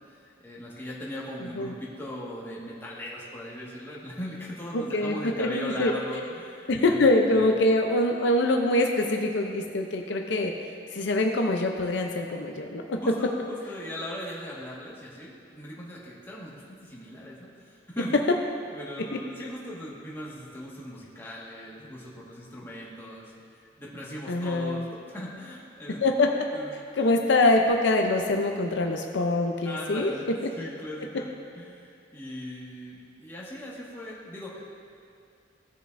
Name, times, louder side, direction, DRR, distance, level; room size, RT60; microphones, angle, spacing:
voice 1, 0.2-7.5 13.0-18.1 18.7-23.3 23.8-26.0 26.5-27.1 29.6-30.3 30.6-34.7, left 1 dB, 15° left, -6 dB, 1.6 m, -39 dB
voice 2, 4.7-5.9 6.7-10.5 10.9-13.0 24.3-24.8 26.0-26.5 27.0-30.1, left 2 dB, 70° left, 3 dB, 0.6 m, -24 dB
16.5 x 6.7 x 2.6 m, 2.4 s
head